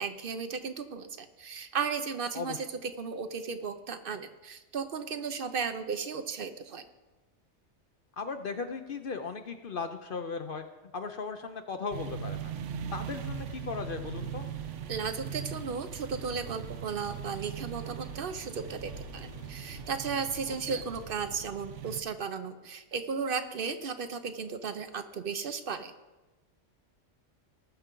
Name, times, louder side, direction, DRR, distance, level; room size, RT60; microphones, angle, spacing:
voice 1, 0.0-6.8 14.9-25.9, right 5 dB, 55° right, 10 dB, 0.8 m, -35 dB
voice 2, 2.3-2.7 8.2-10.7 10.9-12.5 12.9-14.5 20.7-20.8, left 4 dB, 55° left, 7 dB, 0.8 m, -37 dB
sound 1, 11.9-22.0, right 8 dB, 80° right, 1.0 m, -40 dB
sound 2, 13.1-21.4, left 1 dB, 70° left, 2.8 m, -51 dB
19.0 x 6.9 x 3.8 m, 1.1 s
omnidirectional pair, 1.2 m